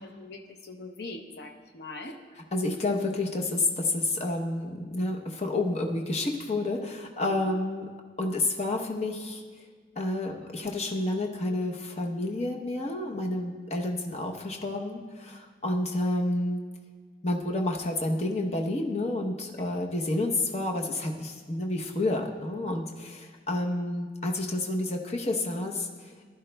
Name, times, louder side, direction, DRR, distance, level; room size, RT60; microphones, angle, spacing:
voice 1, 0.0-2.2 7.3-7.6, left 2 dB, 65° left, 3 dB, 0.7 m, -42 dB
voice 2, 2.5-7.9 8.2-9.4 10.0-16.6 17.2-26.1, left 2 dB, 35° left, 1 dB, 0.8 m, -30 dB
15.0 x 11.5 x 2.2 m, 1.5 s
head